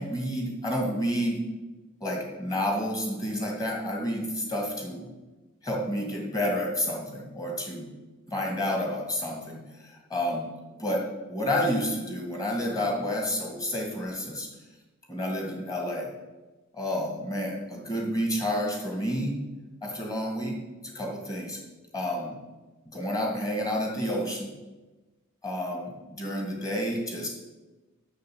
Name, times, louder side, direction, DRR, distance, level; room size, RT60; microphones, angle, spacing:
voice 1, 0.0-1.4 2.0-5.1 5.6-7.9 8.3-10.5 10.8-14.5 15.1-16.1 16.7-19.4 19.8-20.6 20.8-21.6 21.9-22.4 22.9-24.5 25.4-27.3, equal, 15° left, 0 dB, 2.1 m, -30 dB
8.4 x 6.6 x 7.7 m, 1.2 s
head